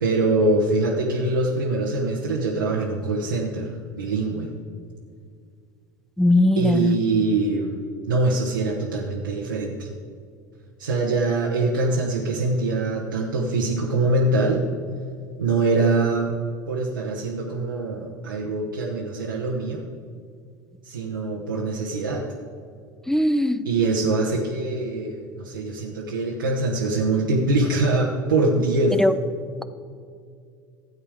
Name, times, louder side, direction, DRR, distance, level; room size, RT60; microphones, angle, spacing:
voice 1, 0.0-4.5 6.6-7.7 8.1-9.9 10.8-14.6 15.4-16.3 16.7-19.8 20.8-22.2 23.6-29.0, right 2 dB, 90° right, -3 dB, 1.1 m, -23 dB
voice 2, 6.2-7.0 23.1-23.6 29.0-29.1, left 1 dB, 5° left, 13 dB, 0.5 m, -19 dB
13.0 x 8.2 x 4.9 m, 2.2 s
hypercardioid pair, 75°, 11 cm